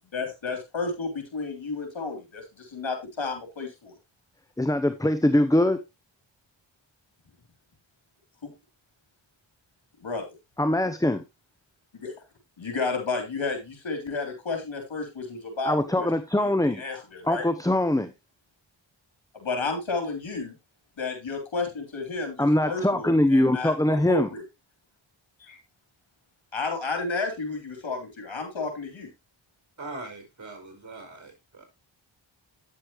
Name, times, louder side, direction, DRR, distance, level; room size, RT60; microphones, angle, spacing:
voice 1, 0.1-3.9 8.4-8.5 10.0-10.2 11.9-12.1 12.6-16.1 16.7-17.4 19.3-20.5 21.0-23.7 24.1-24.4 25.4-25.6 26.5-29.1, left 4 dB, 65° left, 3.5 m, -32 dB
voice 2, 4.6-5.8 10.6-11.2 15.6-16.8 17.2-18.1 22.4-24.3, left 1 dB, 5° left, 0.8 m, -22 dB
voice 3, 29.8-31.6, right 2 dB, 35° right, 5.2 m, -41 dB
9.9 x 7.5 x 3.1 m
cardioid pair, 45°, 49 cm